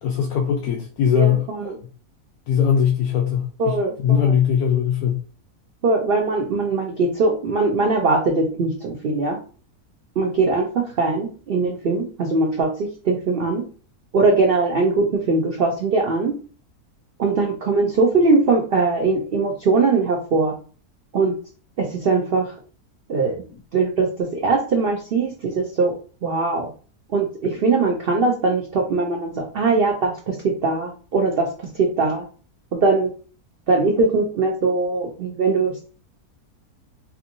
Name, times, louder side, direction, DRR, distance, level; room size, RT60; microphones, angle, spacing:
voice 1, 0.0-1.8 2.5-5.2, left 8 dB, 75° left, 1 dB, 1.1 m, -20 dB
voice 2, 1.1-1.7 3.6-4.3 5.8-9.4 10.2-13.6 14.1-16.3 17.2-20.5 21.1-21.3 21.8-22.5 23.1-23.4 23.7-25.9 26.2-26.7 27.1-32.2 32.7-33.1 33.7-35.9, right 3 dB, 85° right, 1 dB, 0.5 m, -21 dB
3.3 x 2.7 x 2.6 m, 0.39 s
omnidirectional pair, 1.7 m